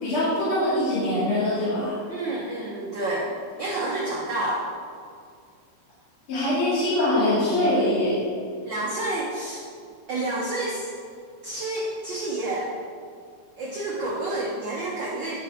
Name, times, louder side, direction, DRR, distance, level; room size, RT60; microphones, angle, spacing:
voice 1, 0.0-2.0 6.3-8.2, left 1 dB, 45° left, -12 dB, 3.0 m, -23 dB
voice 2, 2.1-3.3 3.6-4.7 8.6-9.6 10.1-10.9 11.4-12.7 13.6-15.4, right 2 dB, 90° right, -4 dB, 1.0 m, -29 dB
10.0 x 5.8 x 3.6 m, 2.2 s
omnidirectional pair, 3.5 m